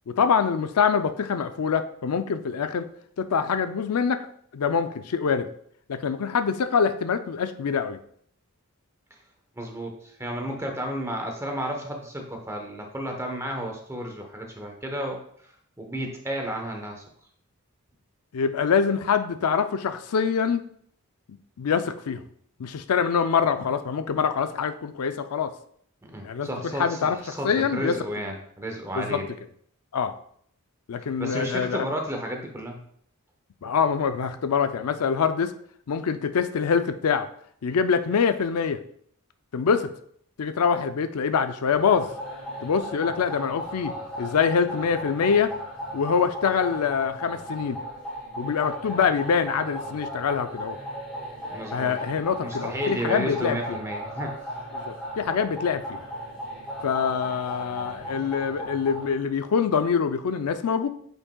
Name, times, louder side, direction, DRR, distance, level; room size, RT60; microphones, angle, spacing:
voice 1, 0.1-2.9 3.2-4.3 4.5-5.5 5.9-8.0 18.3-20.6 21.6-22.2 22.6-25.5 26.2-27.2 27.4-27.9 29.0-29.2 29.9-30.1 30.9-31.8 33.6-35.5 35.9-37.3 37.6-38.8 39.5-39.9 40.4-42.1 42.6-45.5 45.9-47.8 48.4-50.8 51.7-53.6 54.7-56.0 56.8-60.9, left 6 dB, 80° left, 10 dB, 0.4 m, -25 dB
voice 2, 9.6-17.0 26.0-29.3 31.2-32.8 51.5-51.9 52.4-54.4, equal, 10° right, 2 dB, 0.9 m, -32 dB
sound 1, 41.7-59.1, equal, 5° left, 2.2 m, -36 dB
8.5 x 5.3 x 2.3 m, 0.64 s
head